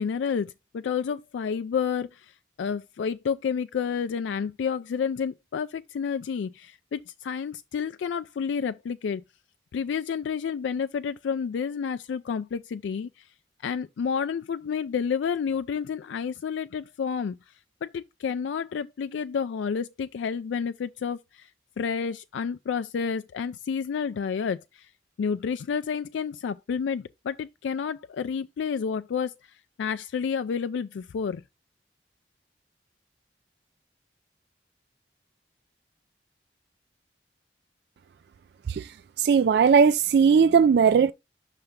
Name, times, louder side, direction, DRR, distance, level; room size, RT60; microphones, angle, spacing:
voice 1, 0.0-2.3 2.6-9.2 9.7-13.1 13.6-17.4 17.8-21.5 21.8-24.9 25.2-29.3 29.8-31.4, left 6 dB, 80° left, 0.3 m, -30 dB
voice 2, 39.2-41.1, right 6 dB, 65° right, 0.3 m, -18 dB
5.7 x 3.3 x 5.0 m
head